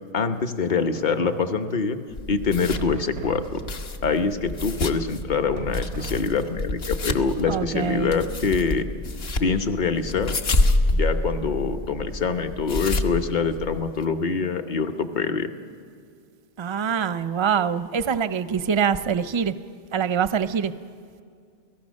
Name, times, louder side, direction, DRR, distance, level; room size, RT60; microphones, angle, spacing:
voice 1, 0.1-2.0 2.3-3.6 4.0-8.9 9.4-10.4 10.9-15.5, left 5 dB, 45° left, 7 dB, 1.0 m, -25 dB
sound 1, 0.9-2.1 2.8-4.2 5.6-6.9 7.5-7.7, right 7 dB, 85° right, 1.0 m, -40 dB
sound 2, 2.1-14.0, left 2 dB, 60° left, 1.3 m, -28 dB
voice 2, 7.5-8.2 16.6-19.5 19.9-20.7, right 7 dB, 35° right, 12 dB, 0.5 m, -24 dB
29.0 x 17.5 x 6.4 m, 2.3 s
omnidirectional pair, 1.2 m